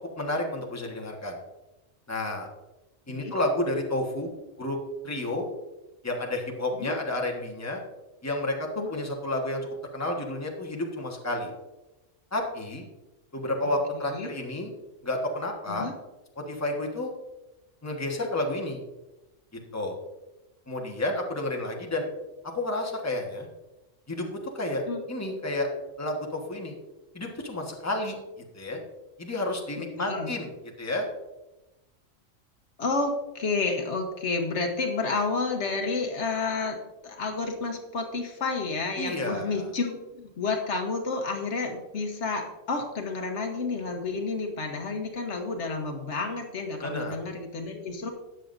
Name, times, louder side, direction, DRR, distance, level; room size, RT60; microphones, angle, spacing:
voice 1, 0.1-1.4 2.1-2.5 3.1-4.3 4.6-4.8 5.0-5.4 6.0-7.8 8.2-9.7 9.9-11.5 12.3-12.9 13.3-14.7 15.0-15.9 16.4-17.1 17.8-18.8 19.7-20.0 20.7-22.1 22.5-23.5 24.1-25.7 26.0-26.7 27.1-28.8 29.2-30.5 30.8-31.1 39.0-39.6 46.8-47.2, left 1 dB, 15° left, 1 dB, 1.3 m, -30 dB
voice 2, 30.0-30.3 32.8-36.8 37.0-48.1, left 3 dB, 70° left, 3 dB, 1.5 m, -30 dB
13.0 x 9.1 x 2.6 m, 1.0 s
omnidirectional pair, 1.3 m